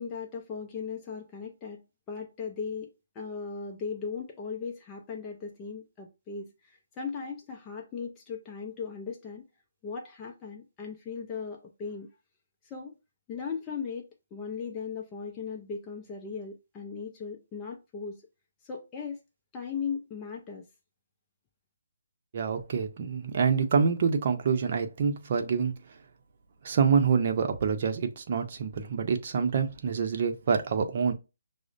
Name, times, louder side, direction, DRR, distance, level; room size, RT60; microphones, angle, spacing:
voice 1, 0.0-9.4 9.8-12.1 12.6-13.0 13.3-18.2 18.6-19.2 19.5-20.7, left 5 dB, 15° left, 0.5 m, -38 dB
voice 2, 22.3-25.7 26.6-31.1, right 6 dB, 45° right, 0.7 m, -26 dB
6.0 x 2.1 x 2.5 m
hypercardioid pair, 155°, 0 cm